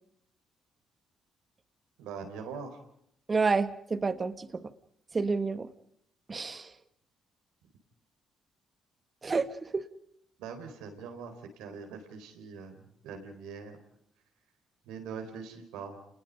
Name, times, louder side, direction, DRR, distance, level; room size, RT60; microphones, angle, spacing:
voice 1, 2.0-2.8 10.4-13.8 14.9-16.0, right 5 dB, 85° right, 6 dB, 4.1 m, -42 dB
voice 2, 3.3-4.5 5.1-5.7 6.3-6.7 9.2-9.8, right 4 dB, 35° right, 11 dB, 1.7 m, -29 dB
29.0 x 20.5 x 5.3 m, 0.72 s
supercardioid pair, 60°, 0 cm